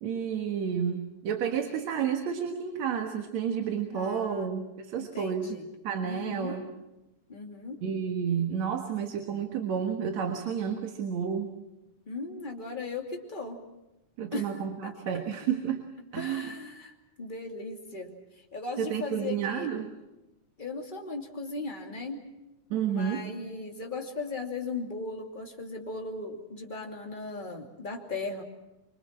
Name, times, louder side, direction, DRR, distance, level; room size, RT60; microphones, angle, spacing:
voice 1, 0.0-5.6 5.8-6.7 7.8-11.5 14.2-15.8 16.1-16.5 18.8-19.9 22.7-23.3, right 7 dB, 65° right, 5 dB, 2.7 m, -31 dB
voice 2, 3.9-4.5 5.0-5.6 6.0-6.6 7.3-7.8 12.1-13.6 14.3-14.5 14.8-14.9 16.2-16.9 17.2-18.1 18.5-19.7 20.6-22.2 22.9-28.4, left 3 dB, 15° left, 1 dB, 2.6 m, -37 dB
25.5 x 25.0 x 7.5 m, 0.96 s
omnidirectional pair, 3.5 m